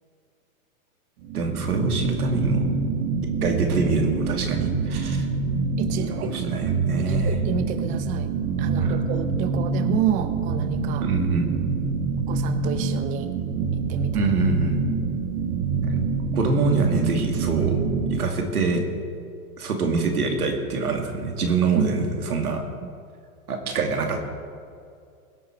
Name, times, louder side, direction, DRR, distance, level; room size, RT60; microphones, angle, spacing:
Deep Cinematic Rumble Stereo, 1.2-18.2, right 4 dB, 55° right, 1.6 m, -26 dB
voice 1, 1.3-2.7 3.4-5.3 6.0-7.4 8.8-9.0 11.0-11.5 14.1-14.8 15.8-16.0 16.3-17.8 18.1-18.8 19.6-22.6 23.5-24.2, right 4 dB, 85° right, 3 dB, 2.4 m, -25 dB
voice 2, 5.8-6.5 7.0-8.3 8.6-11.1 12.3-13.3 13.7-14.2 21.8-21.9 22.4-22.5 22.8-22.9, right 9 dB, 20° right, 11 dB, 0.5 m, -30 dB
21.0 x 8.5 x 4.6 m, 2.3 s
hypercardioid pair, 120°, 44 cm